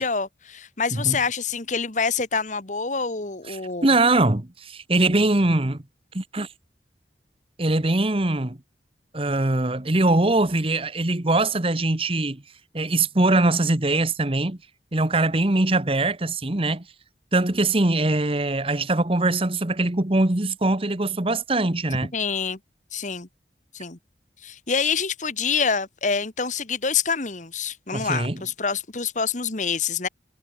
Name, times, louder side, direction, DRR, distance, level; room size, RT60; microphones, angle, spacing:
voice 1, 0.0-3.9 22.1-22.6 22.9-23.3 23.7-24.0 24.4-30.1, left 5 dB, 45° left, 1.6 m, -26 dB
voice 2, 3.5-5.8 6.1-6.5 7.6-8.6 9.1-12.4 12.7-14.6 14.9-16.8 17.3-22.1 27.9-28.4, right 2 dB, 30° right, 1.2 m, -22 dB
head